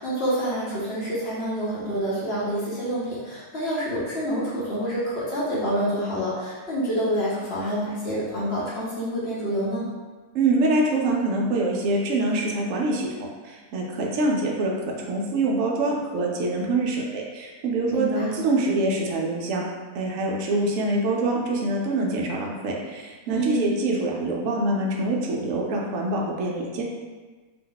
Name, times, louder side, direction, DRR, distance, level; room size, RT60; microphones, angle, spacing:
voice 1, 0.0-9.9 17.9-18.4 23.3-23.7, equal, 50° left, -8 dB, 0.9 m, -27 dB
voice 2, 10.3-13.1 13.4-14.7 15.1-19.6 19.9-26.8, right 2 dB, 70° right, -2 dB, 0.9 m, -25 dB
2.8 x 2.1 x 3.8 m, 1.3 s
omnidirectional pair, 1.6 m